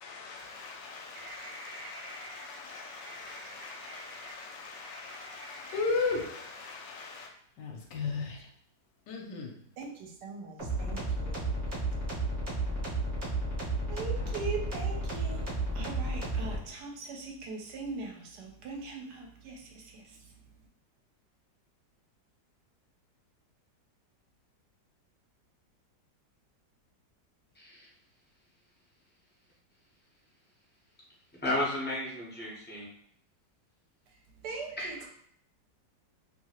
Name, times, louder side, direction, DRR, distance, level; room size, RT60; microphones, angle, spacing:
voice 1, 0.0-7.3 7.6-8.5 9.1-9.6, left 4 dB, 80° left, 1.2 m, -37 dB
voice 2, 1.2-4.3 4.8-5.8 9.8-11.5 13.9-15.4 15.7-20.0 34.4-34.9, right 3 dB, 75° right, 1.2 m, -42 dB
sound 1, 10.6-16.6, right 2 dB, 35° right, 0.9 m, -32 dB
voice 3, 27.5-27.9 31.4-32.9 34.8-35.1, left 1 dB, 15° left, 0.4 m, -33 dB
2.9 x 2.7 x 2.8 m
omnidirectional pair, 1.9 m